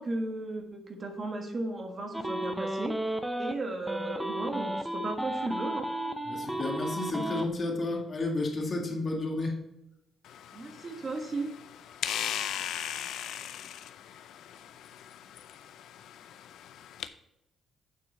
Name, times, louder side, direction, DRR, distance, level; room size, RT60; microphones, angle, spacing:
voice 1, 0.0-3.0 3.4-5.9 10.5-11.5, right 2 dB, 35° right, 3 dB, 1.5 m, -35 dB
sound 1, 2.1-3.5 3.9-7.5, right 1 dB, 5° right, 0.7 m, -33 dB
voice 2, 6.3-9.6, left 2 dB, 40° left, 1 dB, 2.0 m, -31 dB
sound 2, 10.2-17.1, left 10 dB, 80° left, 0.5 m, -39 dB
9.0 x 4.6 x 5.2 m, 0.86 s
cardioid pair, 110°, 0 cm